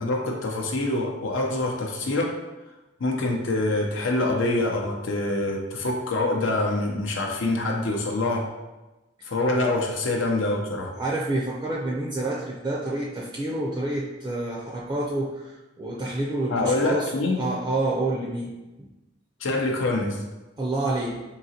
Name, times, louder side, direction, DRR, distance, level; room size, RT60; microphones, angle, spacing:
voice 1, 0.0-2.3 3.0-8.4 9.2-10.9 16.5-17.4 19.4-20.2, left 2 dB, 90° left, 1 dB, 0.6 m, -25 dB
voice 2, 11.0-18.5 18.8-18.9 20.6-21.2, right 2 dB, 20° right, -4 dB, 0.4 m, -28 dB
3.7 x 2.9 x 2.8 m, 1.1 s
head